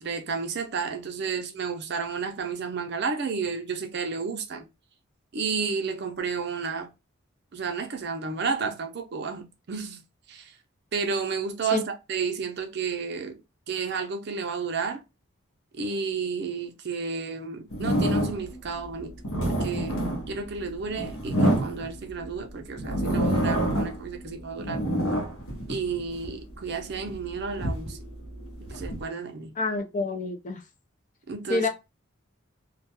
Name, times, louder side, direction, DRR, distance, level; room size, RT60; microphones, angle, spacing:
voice 1, 0.0-4.6 5.3-6.9 7.5-10.0 10.3-10.5 10.9-13.4 13.7-15.0 15.7-19.1 19.6-20.0 20.3-24.8 25.7-28.0 28.7-29.5 31.3-31.7, right 5 dB, 50° right, 0.4 m, -31 dB
sound 1, 17.7-18.6 19.1-22.3 22.8-24.1 24.4-26.3 26.9-29.0, right 1 dB, 90° left, 0.8 m, -27 dB
voice 2, 29.6-30.6 31.5-31.7, left 3 dB, 35° left, 0.4 m, -27 dB
2.2 x 2.2 x 2.7 m
head